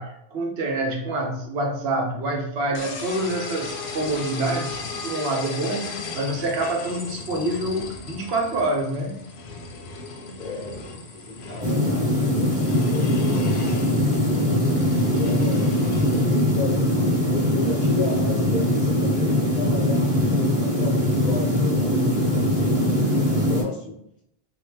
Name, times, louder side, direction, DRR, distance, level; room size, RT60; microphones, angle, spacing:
voice 1, 0.0-9.3 13.3-13.4 14.7-14.9, right 2 dB, 75° right, 2 dB, 1.0 m, -27 dB
sound 1, 2.7-16.2, left 4 dB, 80° left, 0.9 m, -36 dB
voice 2, 10.4-10.8 11.1-13.8 14.4-16.9 17.3-24.0, left 3 dB, 45° left, -2 dB, 1.1 m, -34 dB
sound 2, 11.6-23.6, left 1 dB, 5° right, 1.2 m, -21 dB
3.5 x 2.4 x 2.8 m, 0.72 s
omnidirectional pair, 1.1 m